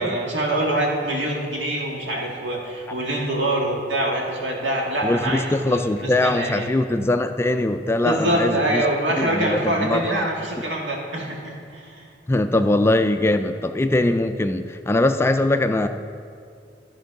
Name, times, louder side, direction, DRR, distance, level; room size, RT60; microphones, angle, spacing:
voice 1, 0.0-6.7 8.0-12.0, right 1 dB, 85° right, -2 dB, 1.9 m, -25 dB
voice 2, 5.0-8.8 9.2-10.3 12.3-15.9, left 2 dB, 15° left, 8 dB, 0.3 m, -21 dB
12.5 x 4.5 x 5.9 m, 2.4 s
head